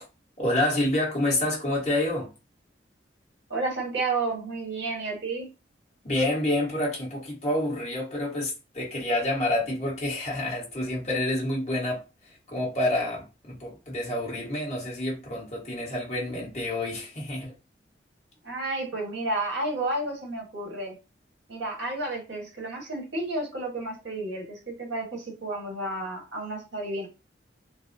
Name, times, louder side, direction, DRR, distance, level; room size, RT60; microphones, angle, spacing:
voice 1, 0.4-2.3 6.0-17.5, left 1 dB, 35° left, 1.4 m, -28 dB
voice 2, 3.5-5.5 18.4-20.9 21.5-27.1, right 2 dB, 75° right, 1.4 m, -31 dB
3.9 x 2.0 x 2.7 m
head